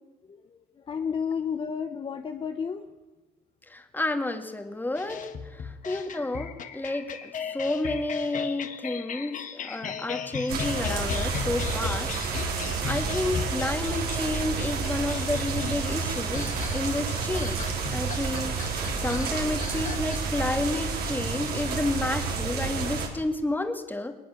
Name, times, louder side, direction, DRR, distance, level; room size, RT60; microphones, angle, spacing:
voice 1, 0.9-2.9, left 6 dB, 30° left, 7 dB, 1.0 m, -31 dB
voice 2, 3.7-5.3 5.5-12.1 12.8-17.7 17.9-18.6 19.0-24.2, left 2 dB, 10° left, 6 dB, 2.2 m, -30 dB
sound 1, 4.9-22.7, left 7 dB, 50° left, 1.8 m, -37 dB
sound 2, 10.5-23.1, right 5 dB, 65° right, 4.1 m, -30 dB
20.0 x 20.0 x 7.0 m, 1.2 s
cardioid pair, 110°, 17 cm